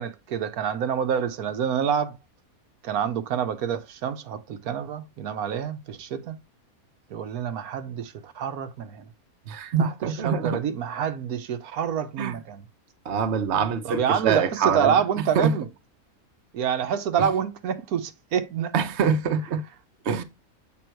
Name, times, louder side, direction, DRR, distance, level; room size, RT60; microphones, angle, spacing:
voice 1, 0.0-2.2 2.8-6.4 7.1-9.1 9.8-9.9 10.2-12.6 13.8-15.7 16.5-18.7, right 8 dB, 85° right, 1.3 m, -27 dB
voice 2, 9.5-10.6 12.2-12.4 13.0-15.0 15.3-15.5 17.2-17.3 18.7-19.6 20.0-20.2, right 6 dB, 55° right, 1.0 m, -24 dB
7.8 x 3.8 x 4.5 m
omnidirectional pair, 1.5 m